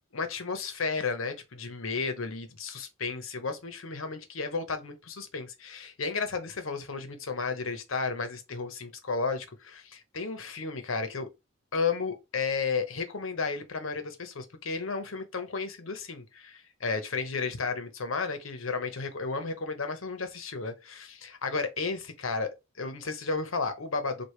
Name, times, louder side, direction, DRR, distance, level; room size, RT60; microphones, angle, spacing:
voice 1, 0.1-11.3 11.7-24.2, left 4 dB, 80° left, 0.9 m, -33 dB
4.8 x 2.5 x 3.2 m
head